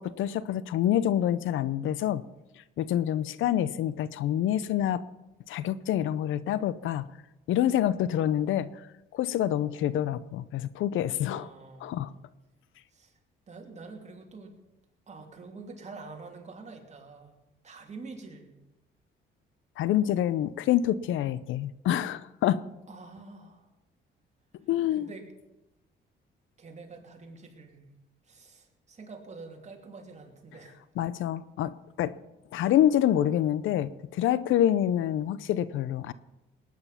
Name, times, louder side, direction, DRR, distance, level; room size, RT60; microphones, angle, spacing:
voice 1, 0.0-2.2 2.8-5.0 5.5-7.1 7.5-8.7 9.1-11.5 11.8-12.1 19.8-22.6 24.7-25.1 31.0-32.1 32.5-36.1, left 11 dB, 80° left, 17 dB, 0.6 m, -27 dB
voice 2, 11.2-12.2 12.9-13.1 13.5-14.6 15.1-17.3 17.6-18.5 22.9-23.7 24.9-25.3 26.6-27.9 28.3-30.8, right 3 dB, 35° right, 1 dB, 3.0 m, -46 dB
19.0 x 9.5 x 5.7 m, 1.0 s
cardioid pair, 90°, 20 cm